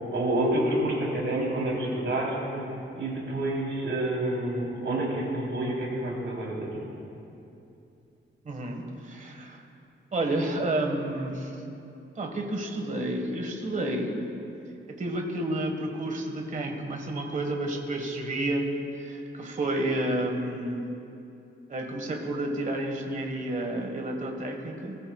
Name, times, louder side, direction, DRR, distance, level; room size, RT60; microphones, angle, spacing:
voice 1, 0.0-2.6 3.0-6.8, right 1 dB, 65° right, -3 dB, 3.4 m, -28 dB
voice 2, 8.4-9.6 10.1-11.5 12.2-14.2 14.9-18.7 19.0-20.8 21.7-25.0, right 1 dB, 40° right, 2 dB, 1.4 m, -30 dB
19.5 x 14.5 x 2.3 m, 2.8 s
wide cardioid pair, 140°, 21 cm